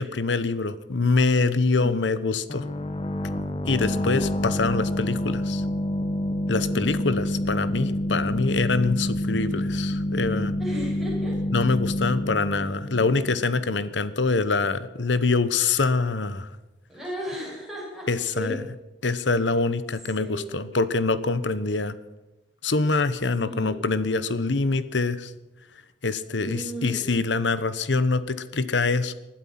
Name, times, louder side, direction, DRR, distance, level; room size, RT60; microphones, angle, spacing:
voice 1, 0.0-2.6 3.7-5.6 6.5-10.5 11.5-16.5 18.1-18.7 19.0-21.9 22.6-25.3 26.0-29.1, left 3 dB, 90° left, 14 dB, 1.0 m, -25 dB
voice 2, 1.8-2.2 3.8-4.2 6.7-7.1 10.6-11.4 12.5-12.7 16.9-18.6 20.1-20.7 23.4-23.9 26.4-27.2, equal, ahead, -5 dB, 7.0 m, -35 dB
sound 1, 2.5-14.0, left 1 dB, 30° left, 1.0 m, -28 dB
20.5 x 12.0 x 5.9 m, 1.0 s
head